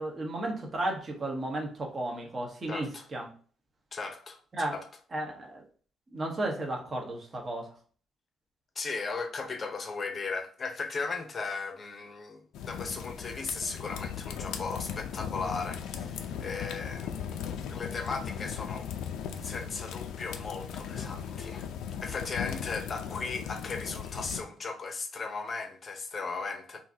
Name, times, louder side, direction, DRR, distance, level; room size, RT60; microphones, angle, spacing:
voice 1, 0.0-3.3 4.5-4.8 5.1-5.6 6.1-7.7, right 1 dB, 25° right, 1.1 m, -34 dB
voice 2, 2.7-3.1 3.9-4.4 4.7-4.9 8.8-17.2 17.7-18.9 19.4-21.7 22.0-26.8, left 4 dB, 30° left, 0.8 m, -36 dB
sound 1, 12.5-24.4, left 8 dB, 85° left, 0.5 m, -38 dB
5.7 x 2.7 x 2.7 m
cardioid pair, 150°, 0 cm